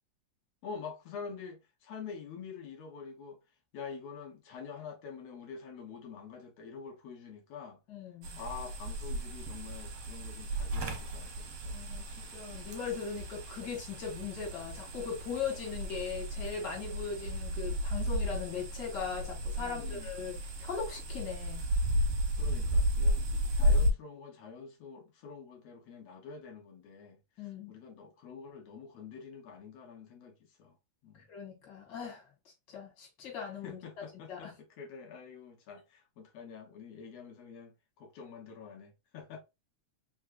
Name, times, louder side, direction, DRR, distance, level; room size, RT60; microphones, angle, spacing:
voice 1, 0.6-3.4 3.7-7.8 8.4-12.2 19.6-20.1 22.4-23.2 23.5-30.8 31.0-31.2 33.6-39.4, left 6 dB, 70° left, 1.7 m, -47 dB
voice 2, 7.9-8.4 11.7-21.7 27.4-27.7 31.3-32.2 32.7-33.8 34.3-34.5, left 6 dB, 40° left, 2.1 m, -39 dB
sound 1, 8.2-23.9, equal, 65° right, 1.4 m, -33 dB
4.5 x 3.5 x 2.4 m
omnidirectional pair, 3.5 m